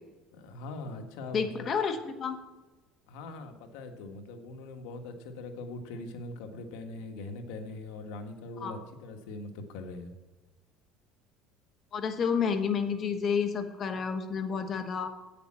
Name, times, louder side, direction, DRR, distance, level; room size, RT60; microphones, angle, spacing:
voice 1, 0.3-1.7 3.1-10.1, left 2 dB, 85° left, 5 dB, 1.4 m, -41 dB
voice 2, 1.3-2.4 8.6-8.7 11.9-15.1, left 6 dB, 35° left, 8 dB, 1.1 m, -30 dB
8.4 x 6.9 x 7.4 m, 1.2 s
cardioid pair, 125°, 0 cm